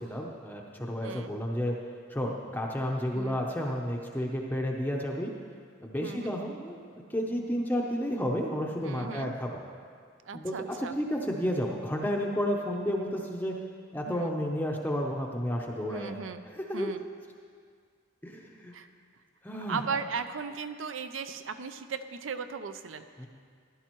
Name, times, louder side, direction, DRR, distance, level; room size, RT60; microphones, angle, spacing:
voice 1, 0.0-1.7 2.1-5.3 5.8-9.6 10.3-13.5 13.9-16.2 16.5-16.9 18.2-18.7 19.4-19.8 23.2-23.3, equal, 10° left, -1 dB, 0.6 m, -31 dB
voice 2, 8.8-9.3 10.3-10.9 14.1-14.3 15.9-16.4 16.7-17.0 18.7-18.9 19.7-23.0, right 5 dB, 75° right, 10 dB, 0.5 m, -37 dB
14.5 x 11.5 x 3.0 m, 2.1 s
head